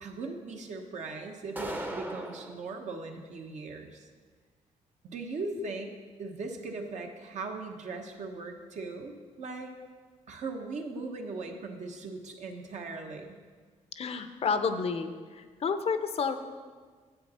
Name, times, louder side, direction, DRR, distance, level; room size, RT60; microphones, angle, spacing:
voice 1, 0.0-4.1 5.0-5.9 6.2-9.7 10.3-13.4, right 3 dB, 65° right, 3 dB, 1.1 m, -39 dB
sound 1, 1.6-2.6, right 1 dB, 15° right, 0.7 m, -37 dB
voice 2, 13.9-16.4, left 5 dB, 50° left, 9 dB, 0.6 m, -30 dB
9.5 x 7.9 x 4.2 m, 1.5 s
cardioid pair, 100°, 13 cm